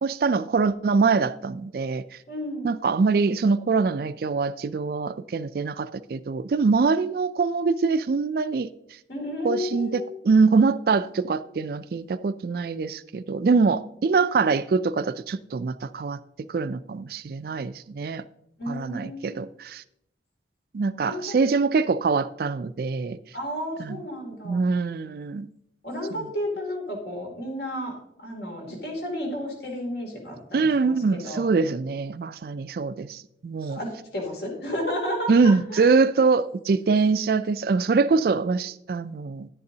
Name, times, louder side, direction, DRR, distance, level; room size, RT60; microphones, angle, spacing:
voice 1, 0.0-2.0 2.6-8.7 9.4-16.2 16.5-18.2 18.7-19.8 20.7-23.2 23.8-24.0 24.4-25.5 26.1-26.3 30.5-33.8 35.3-39.5, right 4 dB, 55° right, 0.3 m, -24 dB
voice 2, 2.3-2.7 9.1-10.1 18.6-19.3 21.0-21.4 23.3-24.7 25.8-31.5 33.7-35.9, left 1 dB, 65° left, 2.7 m, -32 dB
10.5 x 9.4 x 2.8 m
head